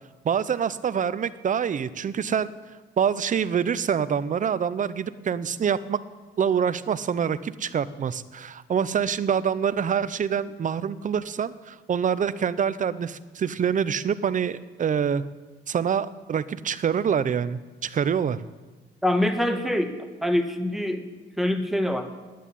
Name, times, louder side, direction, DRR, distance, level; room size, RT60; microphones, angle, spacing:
voice 1, 0.2-2.5 3.0-6.0 6.4-15.2 15.7-18.4, right 7 dB, 40° right, 15 dB, 0.6 m, -26 dB
voice 2, 19.0-19.9 20.2-21.1 21.4-22.1, left 1 dB, ahead, 6 dB, 1.3 m, -24 dB
10.5 x 9.1 x 8.5 m, 1.3 s
cardioid pair, 90°, 20 cm